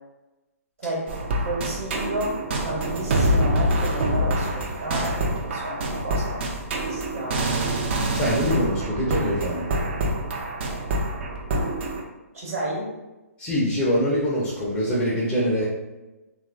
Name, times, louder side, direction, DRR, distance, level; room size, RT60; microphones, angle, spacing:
voice 1, 0.8-1.1 1.4-6.4 6.8-7.4 12.3-12.9, right 1 dB, 60° right, -3 dB, 1.2 m, -31 dB
sound 1, 1.1-12.0, right 1 dB, 45° right, 0.5 m, -26 dB
voice 2, 8.1-9.7 13.4-15.7, equal, 15° left, -6 dB, 0.6 m, -24 dB
2.9 x 2.4 x 2.5 m, 1.1 s
hypercardioid pair, 135°, 8 cm